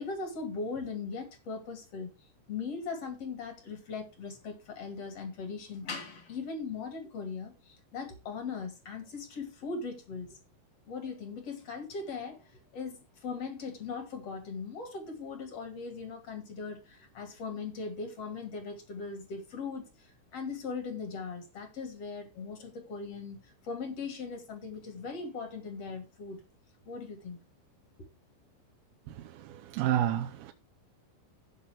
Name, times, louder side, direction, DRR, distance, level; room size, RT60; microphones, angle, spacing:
voice 1, 0.0-10.4 10.9-26.4 26.8-27.4, left 4 dB, 50° left, 2.0 m, -39 dB
voice 2, 29.5-30.5, right 11 dB, 90° right, 3.5 m, -29 dB
16.0 x 5.6 x 3.5 m
omnidirectional pair, 5.9 m